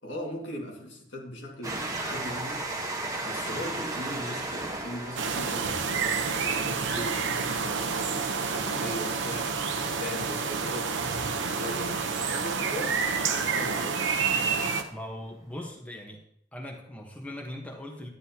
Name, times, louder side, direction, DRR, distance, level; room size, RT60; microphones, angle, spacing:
voice 1, 0.0-2.7 3.2-9.6 10.0-11.0 11.4-14.1, equal, 75° left, 0 dB, 1.9 m, -39 dB
Train, 1.6-12.8 13.5-13.6 13.8-13.9, right 2 dB, 20° right, 1.2 m, -38 dB
sound 1, 5.2-14.8, right 5 dB, 85° right, 0.8 m, -29 dB
voice 2, 14.9-16.2 16.5-18.1, left 1 dB, 10° left, 1 dB, 1.1 m, -40 dB
11.0 x 9.8 x 2.8 m, 0.71 s
head